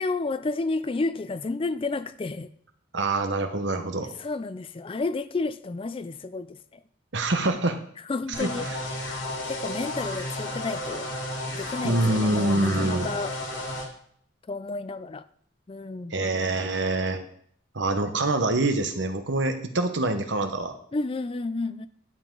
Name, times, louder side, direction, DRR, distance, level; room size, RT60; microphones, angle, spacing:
voice 1, 0.0-2.5 4.2-6.8 8.0-8.7 9.4-11.1 11.5-13.3 14.5-15.3 15.7-16.1 20.9-21.9, left 3 dB, 30° left, 0.4 m, -31 dB
voice 2, 2.9-4.1 7.1-7.8 8.4-8.8 11.8-13.1 16.1-17.2 17.7-20.7, right 2 dB, 70° right, 1.1 m, -25 dB
sound 1, 8.3-13.8, left 1 dB, 80° left, 2.5 m, -33 dB
11.5 x 7.3 x 3.9 m
head